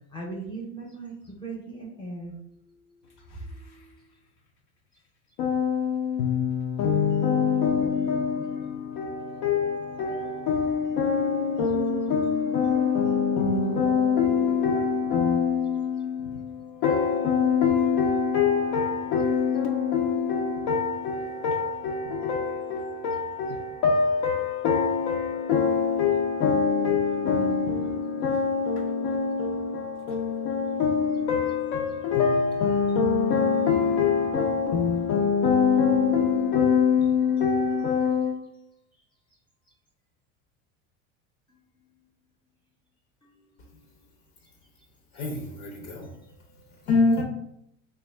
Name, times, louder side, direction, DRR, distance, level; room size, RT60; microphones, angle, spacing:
voice 1, 0.1-2.6 3.5-3.9 27.1-27.4 41.5-42.1 43.2-44.0 46.2-46.7, right 3 dB, 15° left, 0.6 m, -41 dB
voice 2, 5.4-38.4, left 6 dB, 60° left, 0.5 m, -24 dB
voice 3, 45.1-46.1 46.8-47.2, left 3 dB, 80° left, 0.8 m, -24 dB
3.5 x 2.2 x 3.4 m
cardioid pair, 135°, 34 cm